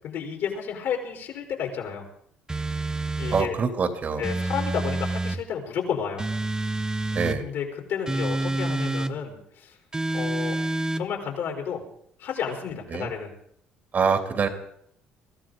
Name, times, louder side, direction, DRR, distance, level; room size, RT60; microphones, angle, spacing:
voice 1, 0.0-2.1 3.2-3.6 4.2-6.2 7.4-9.8 10.1-10.6 10.9-11.8 12.2-13.3, left 7 dB, 70° left, 1 dB, 4.4 m, -31 dB
sound 1, 2.5-3.5 4.2-5.4 6.2-7.4 8.1-9.1 9.9-11.0, right 2 dB, 20° right, 1.0 m, -28 dB
voice 2, 3.3-4.2 7.1-7.4 12.9-13.1 13.9-14.5, right 5 dB, 45° right, 6 dB, 2.7 m, -25 dB
23.0 x 14.0 x 3.9 m, 0.68 s
hypercardioid pair, 65°, 4 cm